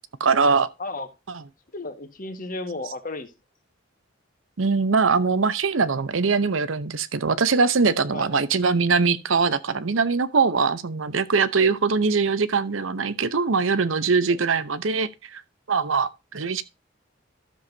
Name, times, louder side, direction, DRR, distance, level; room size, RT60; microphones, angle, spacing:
voice 1, 0.2-0.7 1.3-1.4 4.6-15.4 15.7-16.6, right 4 dB, 90° right, 0.8 m, -22 dB
voice 2, 1.7-3.3 8.1-8.4 11.6-11.8 14.3-14.5, left 2 dB, 45° left, 1.5 m, -34 dB
12.5 x 7.1 x 2.7 m
head